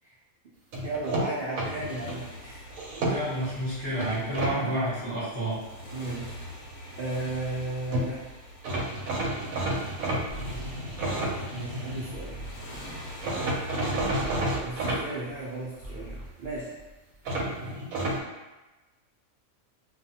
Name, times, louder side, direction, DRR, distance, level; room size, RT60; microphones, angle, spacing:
sound 1, 0.7-2.2 2.7-3.5 4.0-4.5 7.6-7.7 7.9-8.1 8.6-12.1 13.2-15.0 17.2-18.2, right 1 dB, 90° right, 1.0 m, -30 dB
voice 1, 0.8-2.7 5.9-6.4 7.0-8.3 11.5-12.5 14.6-16.7, right 2 dB, 70° right, -7 dB, 0.5 m, -35 dB
Motorcycle, 1.4-16.6, equal, 75° left, 1.1 m, -45 dB
voice 2, 3.0-5.5, right 1 dB, 20° left, -12 dB, 0.9 m, -30 dB
sound 2, 10.3-15.5 15.7-17.5, right 1 dB, 50° left, 0.7 m, -44 dB
2.5 x 2.3 x 2.7 m, 1.1 s
omnidirectional pair, 1.4 m